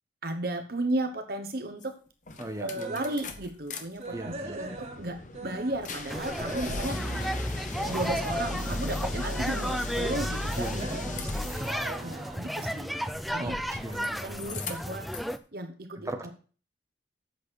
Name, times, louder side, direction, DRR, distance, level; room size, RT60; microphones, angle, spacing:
voice 1, 0.2-2.0 2.6-7.2 7.8-11.0 12.0-12.9 13.3-13.6 13.9-14.0 14.2-15.1 15.5-16.3, right 1 dB, 60° right, 7 dB, 1.1 m, -34 dB
sound 1, 1.8-1.9 2.3-3.8 4.1-11.9 13.4-14.1 14.3-15.3, left 2 dB, 45° left, 1.4 m, -37 dB
voice 2, 2.4-3.0 4.1-4.6 10.6-11.8 13.4-13.5 13.8-14.2 16.0-16.3, right 1 dB, 20° right, 4 dB, 1.5 m, -38 dB
sound 2, 2.8-3.3 3.7-5.9 6.1-13.4 13.7-14.0 14.5-14.6 14.9-15.0, right 2 dB, 40° right, 1.5 m, -42 dB
sound 3, 6.1-15.4, equal, ahead, 0.5 m, -34 dB
8.4 x 6.3 x 6.2 m, 0.39 s
head